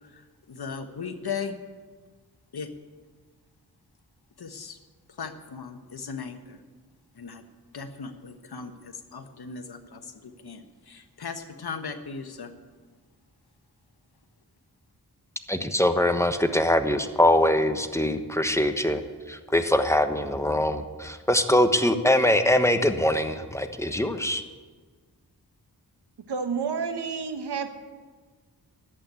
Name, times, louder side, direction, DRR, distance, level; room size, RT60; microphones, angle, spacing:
voice 1, 0.0-1.6 2.5-2.7 4.4-4.8 5.1-6.6 7.1-7.4 7.7-12.5, left 5 dB, 70° left, 8 dB, 1.3 m, -37 dB
voice 2, 15.5-19.0 19.3-24.4, left 1 dB, 5° left, 8 dB, 1.2 m, -23 dB
voice 3, 26.3-27.7, right 5 dB, 90° right, 9 dB, 1.1 m, -29 dB
11.5 x 8.6 x 9.6 m, 1.5 s
cardioid pair, 50°, 39 cm